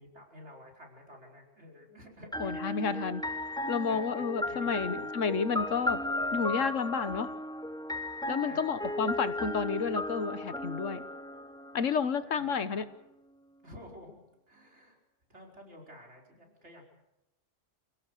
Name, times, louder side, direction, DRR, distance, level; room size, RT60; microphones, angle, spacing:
voice 1, 0.0-2.6 3.9-5.1 8.4-9.0 12.3-12.8 13.6-14.2 14.5-15.0 15.3-16.9, left 1 dB, 60° right, 0 dB, 5.4 m, -51 dB
sound 1, 2.3-12.1, left 1 dB, 5° left, 0.4 m, -35 dB
voice 2, 2.4-3.2 3.7-6.0 6.3-7.3 8.3-11.0 11.7-12.8, left 5 dB, 75° left, 13 dB, 1.4 m, -31 dB
28.0 x 17.5 x 6.6 m, 0.90 s
omnidirectional pair, 1.3 m